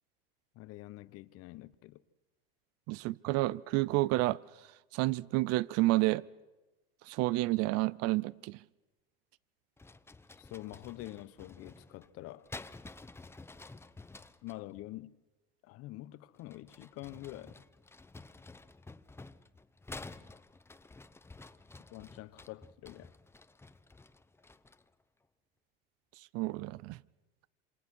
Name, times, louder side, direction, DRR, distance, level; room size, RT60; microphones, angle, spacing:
voice 1, 0.5-2.0 10.4-12.5 14.4-15.2 15.6-17.5 21.9-23.1, left 17 dB, 55° left, 1.2 m, -46 dB
voice 2, 2.9-4.4 4.9-6.2 7.1-8.6 26.3-27.0, right 19 dB, 55° right, 0.8 m, -30 dB
sound 1, 9.8-14.6 16.4-24.9, left 3 dB, 10° left, 0.9 m, -51 dB
27.5 x 26.0 x 6.4 m
hypercardioid pair, 90°, 29 cm